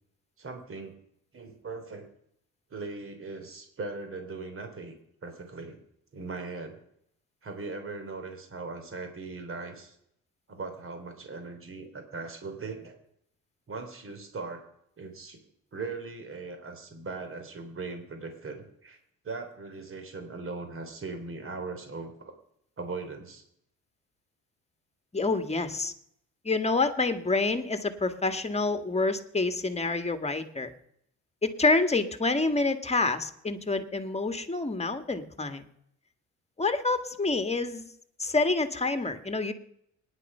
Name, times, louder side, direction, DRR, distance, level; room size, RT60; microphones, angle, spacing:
voice 1, 0.4-1.0 1.3-2.1 2.7-4.9 5.2-5.8 6.1-6.8 7.4-9.9 10.5-13.0 13.7-14.6 15.0-15.4 15.7-19.0 19.2-22.3 22.8-23.4, right 3 dB, 45° right, 6 dB, 3.5 m, -39 dB
voice 2, 25.1-25.9 26.4-30.7 31.4-35.6 36.6-37.9 38.2-39.5, left 3 dB, 20° left, 8 dB, 1.7 m, -27 dB
24.0 x 10.5 x 5.6 m, 0.74 s
cardioid pair, 90°, 30 cm